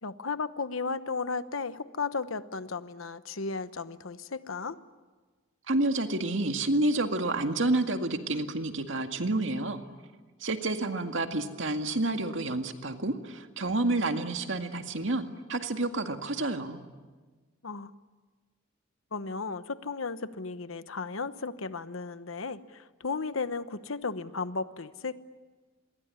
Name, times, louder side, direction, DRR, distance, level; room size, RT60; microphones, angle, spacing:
voice 1, 0.0-4.8 17.6-17.9 19.1-25.2, left 4 dB, 90° left, 12 dB, 1.1 m, -35 dB
voice 2, 5.7-9.8 10.4-16.8, right 2 dB, 70° right, 6 dB, 2.0 m, -29 dB
27.0 x 22.0 x 9.7 m, 1.4 s
head